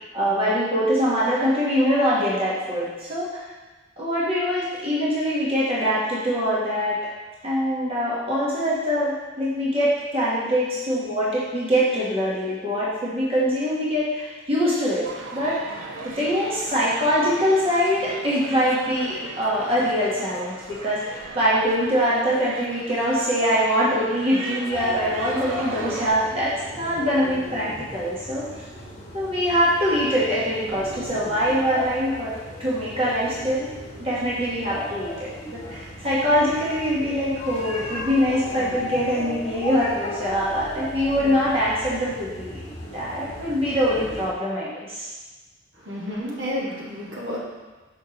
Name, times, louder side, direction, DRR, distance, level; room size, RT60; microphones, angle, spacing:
voice 1, 0.1-3.4 4.0-7.0 7.4-15.0 15.3-15.6 16.0-28.6 29.1-32.3 32.6-33.7 34.0-42.6 42.9-45.1, equal, 30° right, -7 dB, 1.0 m, -23 dB
sound 1, 15.0-26.1, right 3 dB, 80° right, 0.6 m, -37 dB
sound 2, 24.7-44.3, left 1 dB, 35° left, 1.3 m, -36 dB
voice 2, 45.7-47.4, left 1 dB, 60° right, -5 dB, 1.4 m, -31 dB
6.2 x 5.3 x 2.8 m, 1.2 s
head